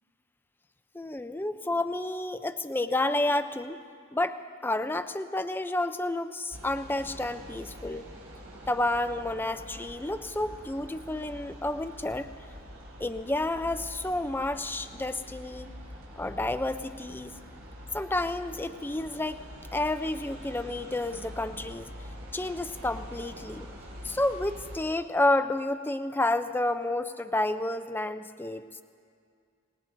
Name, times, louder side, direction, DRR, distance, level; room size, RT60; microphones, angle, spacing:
voice 1, 0.9-3.8 4.1-4.4 4.6-8.1 8.7-12.3 13.0-15.7 16.2-17.3 17.9-19.4 19.7-21.9 22.3-23.7 24.0-28.7, left 2 dB, 10° left, 9 dB, 0.4 m, -30 dB
sound 1, 6.5-24.8, equal, 70° right, 4.7 m, -45 dB
26.5 x 19.5 x 2.6 m, 2.2 s
head